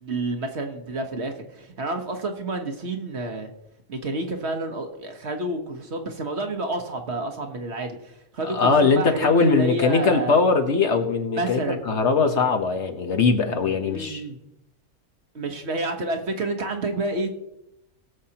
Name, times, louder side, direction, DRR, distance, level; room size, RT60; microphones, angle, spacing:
voice 1, 0.0-3.5 3.9-10.4 11.3-11.8 13.8-14.4 15.3-17.3, right 2 dB, 50° right, 4 dB, 1.3 m, -29 dB
voice 2, 8.4-14.2, left 4 dB, 55° left, 5 dB, 1.2 m, -21 dB
21.0 x 7.2 x 2.9 m, 0.87 s
omnidirectional pair, 1.5 m